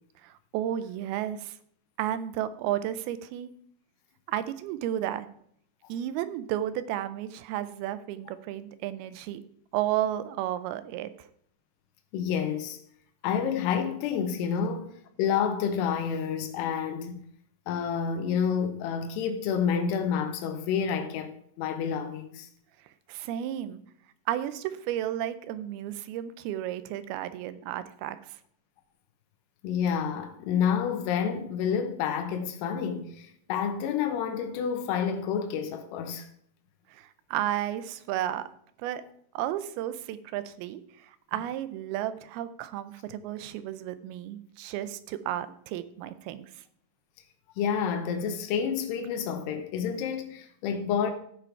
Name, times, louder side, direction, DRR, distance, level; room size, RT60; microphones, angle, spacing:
voice 1, 0.2-1.6 2.0-3.5 4.3-5.3 5.9-9.4 9.7-11.3 23.1-23.8 24.3-28.2 36.9-38.5 38.8-39.0 39.3-40.8 41.3-46.5, right 12 dB, 80° right, 2.4 m, -32 dB
voice 2, 12.1-12.8 13.2-14.9 15.2-17.2 17.7-21.3 21.6-22.5 29.6-36.3 47.6-51.1, left 7 dB, 85° left, 3.0 m, -29 dB
15.0 x 5.1 x 4.5 m
omnidirectional pair, 4.7 m